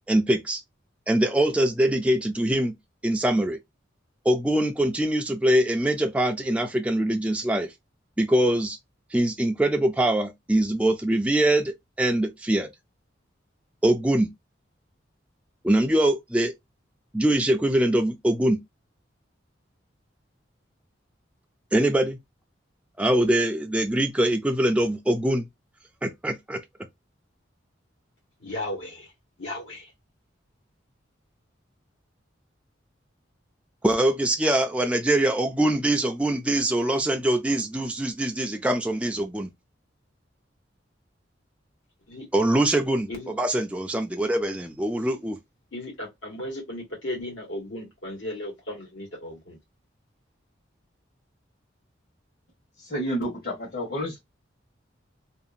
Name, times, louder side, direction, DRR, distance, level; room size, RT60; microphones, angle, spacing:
voice 1, 0.1-0.6 1.1-2.7 3.0-3.6 4.3-7.7 8.2-8.8 9.1-12.7 13.8-14.3 15.6-16.5 17.1-18.6 21.7-22.2 23.0-25.5 26.0-26.6 33.8-39.5 42.3-45.4, right 1 dB, 5° right, 0.3 m, -23 dB
voice 2, 28.4-29.1 29.4-29.9 42.1-42.2 43.1-43.3 45.7-49.6, left 1 dB, 80° left, 1.5 m, -35 dB
voice 3, 52.8-54.2, equal, 55° left, 1.2 m, -30 dB
2.8 x 2.4 x 2.5 m
head